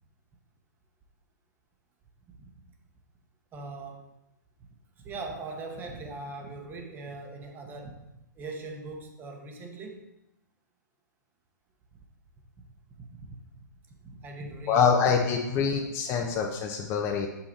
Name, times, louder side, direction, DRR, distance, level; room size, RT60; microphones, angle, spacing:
voice 1, 3.5-4.1 5.0-8.1 8.4-10.1 13.0-13.3 14.0-15.3, right 3 dB, 20° right, 3 dB, 1.0 m, -41 dB
voice 2, 14.7-17.3, left 6 dB, 25° left, 1 dB, 0.7 m, -25 dB
6.8 x 5.7 x 4.2 m, 0.89 s
hypercardioid pair, 140°, 10 cm